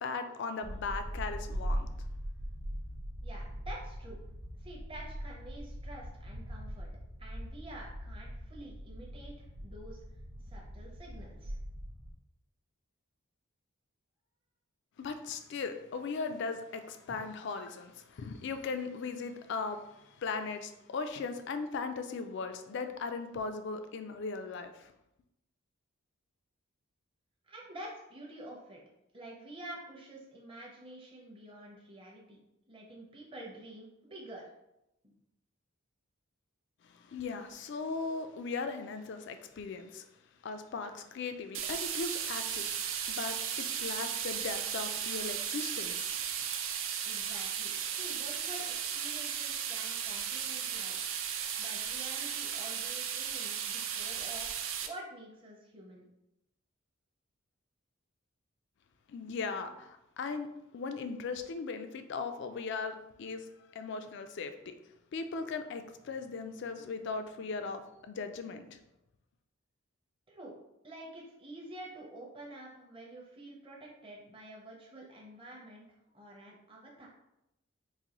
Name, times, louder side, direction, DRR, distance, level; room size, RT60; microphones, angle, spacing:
voice 1, 0.0-1.9 15.0-24.9 36.8-40.1 40.4-46.2 59.1-60.5 60.7-64.7 65.1-68.8, left 4 dB, 55° left, 8 dB, 0.3 m, -38 dB
sound 1, 0.6-12.1, equal, 85° right, 0.9 m, -41 dB
voice 2, 3.2-4.2 4.6-6.9 7.2-10.0 10.5-11.6 27.4-28.8 29.1-32.4 32.7-34.4 35.0-35.1 47.0-51.1 51.6-56.0 70.3-70.5 70.8-75.9 76.1-77.1, right 1 dB, 25° right, -3 dB, 0.6 m, -48 dB
sound 2, 41.5-54.9, right 8 dB, 60° right, 0.4 m, -35 dB
4.0 x 2.6 x 2.9 m, 0.87 s
head